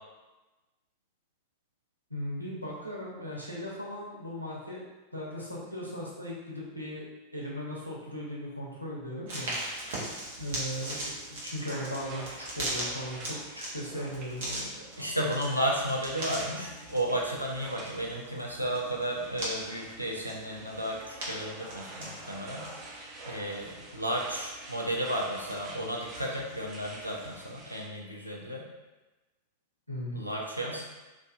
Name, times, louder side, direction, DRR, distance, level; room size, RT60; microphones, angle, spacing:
voice 1, 2.1-4.8 5.1-7.0 7.3-9.5 10.4-15.1 29.9-30.2, equal, 90° left, -4 dB, 0.6 m, -38 dB
sound 1, 9.3-27.6, right 1 dB, 55° right, 0.8 m, -41 dB
sound 2, 11.5-27.9, right 2 dB, 30° right, 0.4 m, -48 dB
voice 2, 15.0-22.7 23.3-28.6 30.1-30.8, right 1 dB, 90° right, -2 dB, 0.4 m, -33 dB
2.4 x 2.3 x 2.3 m, 1.1 s
figure-of-eight pair, 90°, 0 cm